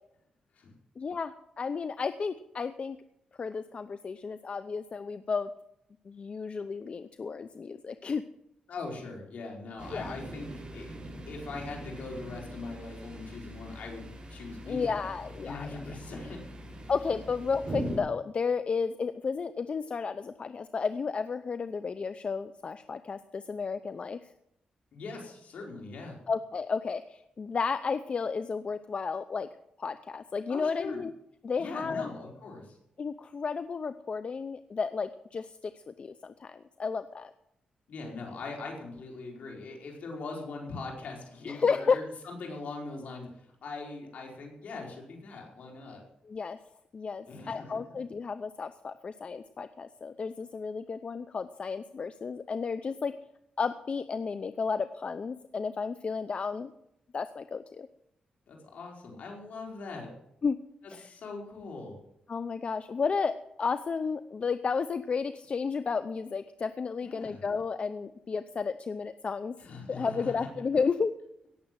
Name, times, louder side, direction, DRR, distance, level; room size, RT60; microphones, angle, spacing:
voice 1, 1.0-3.0 3.4-5.5 6.1-8.2 9.9-10.1 14.7-15.7 16.9-24.3 26.3-29.5 29.8-31.1 31.4-32.1 33.0-37.3 41.4-42.0 46.2-46.6 46.9-53.1 53.6-56.7 57.1-57.9 60.4-60.6 60.9-61.1 62.3-69.5 69.9-71.1, left 5 dB, 45° left, 12 dB, 0.7 m, -32 dB
voice 2, 8.7-11.0 11.3-15.0 15.4-16.4 24.9-26.2 30.5-31.0 31.6-32.8 37.9-46.0 47.3-47.8 58.5-60.1 60.8-62.0 67.0-67.4 69.6-70.5, left 3 dB, 70° left, 0 dB, 4.7 m, -41 dB
sound 1, 9.8-18.0, right 1 dB, 40° right, 7.0 m, -42 dB
17.5 x 7.5 x 7.6 m, 0.79 s
cardioid pair, 80°, 3 cm